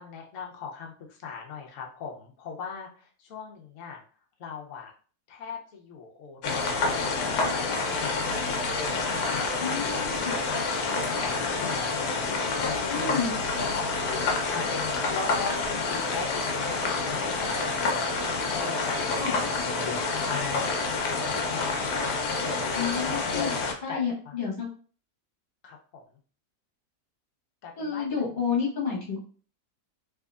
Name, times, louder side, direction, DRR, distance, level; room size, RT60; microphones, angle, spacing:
voice 1, 0.0-4.0 4.4-4.9 5.3-6.4 6.7-10.0 10.4-13.3 13.6-16.4 16.7-21.7 22.3-24.0 24.3-24.4 25.6-26.0 27.6-28.2, left 5 dB, 60° left, 0 dB, 0.9 m, -39 dB
sound 1, 6.4-23.7, left 3 dB, 80° left, 1.3 m, -28 dB
voice 2, 9.6-10.3 12.9-13.3 19.2-19.3 22.7-23.5 23.8-24.7 27.8-29.2, left 6 dB, 35° left, -4 dB, 1.1 m, -30 dB
3.6 x 2.9 x 2.4 m, 0.41 s
omnidirectional pair, 1.8 m